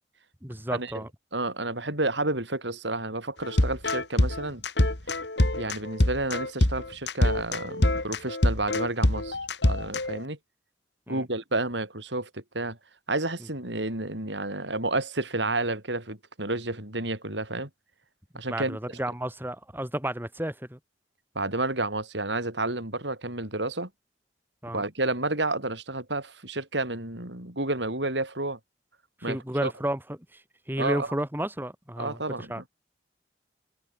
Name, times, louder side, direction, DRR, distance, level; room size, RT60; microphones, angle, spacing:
voice 1, 0.4-1.1 11.1-11.2 18.5-20.8 24.6-24.8 29.2-30.0 30.3-32.6, right 1 dB, 10° right, 3.5 m, -32 dB
voice 2, 1.3-4.6 5.6-9.4 9.6-10.4 11.1-12.8 13.1-17.7 18.3-18.8 21.3-23.9 24.7-28.6 29.2-29.7 30.8-31.1 32.0-32.6, right 2 dB, 80° right, 7.8 m, -30 dB
sound 1, 3.4-10.2, left 1 dB, 75° left, 3.0 m, -25 dB
head